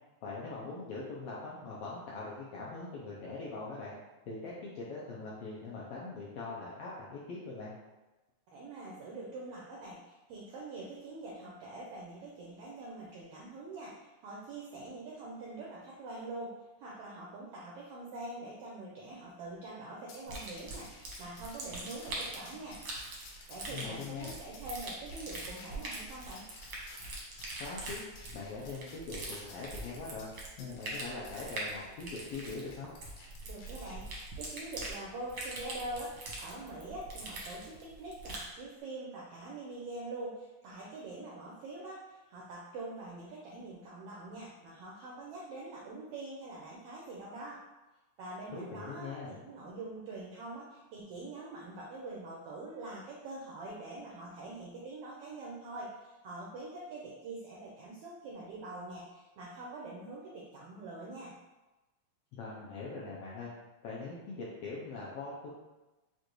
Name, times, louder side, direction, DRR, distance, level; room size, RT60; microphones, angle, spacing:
voice 1, 0.2-3.9 4.3-7.7 23.7-24.4 27.6-28.0 28.3-30.3 30.6-32.9 48.5-49.4 62.4-63.5 63.8-65.5, left 3 dB, 75° left, -6 dB, 1.5 m, -42 dB
voice 2, 8.5-22.8 23.5-26.4 33.4-47.6 48.2-61.3, right 2 dB, 80° right, -4 dB, 1.3 m, -44 dB
sound 1, 20.1-34.2 34.9-35.0 35.4-35.5 36.0-36.2, left 3 dB, 90° left, 2.2 m, -55 dB
sound 2, 20.3-38.5, right 2 dB, 65° right, 1.1 m, -43 dB
6.5 x 2.5 x 3.1 m, 1.1 s
omnidirectional pair, 3.3 m